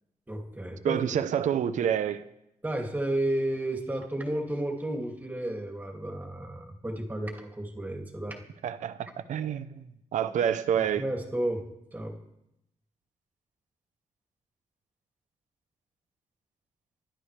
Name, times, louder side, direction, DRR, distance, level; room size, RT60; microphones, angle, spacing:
voice 1, 0.3-1.0 2.6-8.4 11.0-11.6 11.9-12.2, right 1 dB, 15° right, 2.5 m, -32 dB
voice 2, 0.8-2.2 8.6-11.1, right 9 dB, 85° right, 0.8 m, -28 dB
26.5 x 11.5 x 3.4 m
cardioid pair, 105°, 12 cm